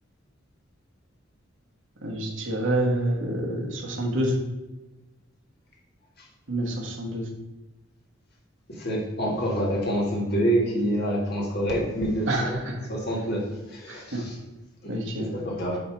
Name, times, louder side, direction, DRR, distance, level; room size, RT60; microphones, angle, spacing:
voice 1, 2.0-4.3 6.5-7.3 12.3-12.7 13.9-14.2 14.8-15.3, right 1 dB, 70° right, 1 dB, 1.3 m, -27 dB
voice 2, 8.7-12.6 12.9-14.4 14.8-15.8, right 1 dB, 50° left, -2 dB, 1.7 m, -27 dB
8.8 x 3.0 x 4.5 m, 1.1 s
head